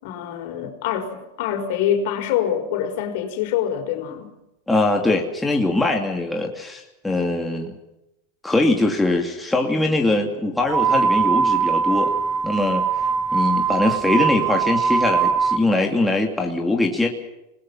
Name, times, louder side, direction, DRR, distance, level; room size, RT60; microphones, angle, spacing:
voice 1, 0.0-4.3, left 9 dB, 60° left, 6 dB, 5.1 m, -25 dB
voice 2, 4.7-7.7 8.4-12.1 12.4-12.8 13.3-17.1, left 2 dB, 5° left, 1 dB, 2.6 m, -22 dB
sound 1, 10.7-15.6, right 6 dB, 25° right, 1.4 m, -21 dB
27.5 x 20.5 x 5.7 m, 0.91 s
supercardioid pair, 145°, 0 cm